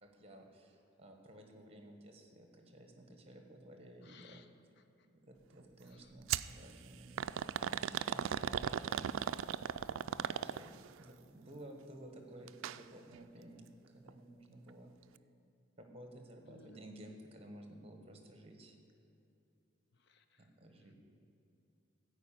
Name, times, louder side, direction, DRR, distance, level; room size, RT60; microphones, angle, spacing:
voice 1, 0.0-4.4 5.1-9.1 10.0-14.9 15.8-18.8 20.4-21.0, right 1 dB, 30° right, 4 dB, 1.3 m, -54 dB
voice 2, 4.0-4.5 4.8-4.9 5.9-6.1 16.5-16.8 19.9-20.5, left 5 dB, 55° left, 9 dB, 0.6 m, -61 dB
sound 1, 6.3-6.5 7.2-10.9 12.5-12.8 13.1-13.2 14.1-14.2, right 9 dB, 85° right, 0.3 m, -36 dB
14.0 x 5.0 x 8.8 m, 2.7 s
head